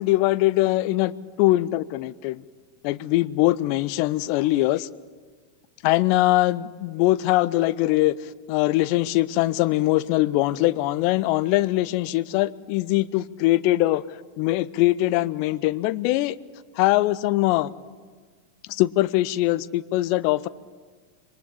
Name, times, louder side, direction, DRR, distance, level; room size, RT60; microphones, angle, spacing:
voice 1, 0.0-2.4 2.8-4.9 5.8-8.2 8.5-14.0 14.4-16.4 16.8-17.7 18.7-20.5, left 17 dB, 45° left, 17 dB, 0.7 m, -22 dB
27.0 x 22.5 x 8.4 m, 1.5 s
figure-of-eight pair, 90°, 0 cm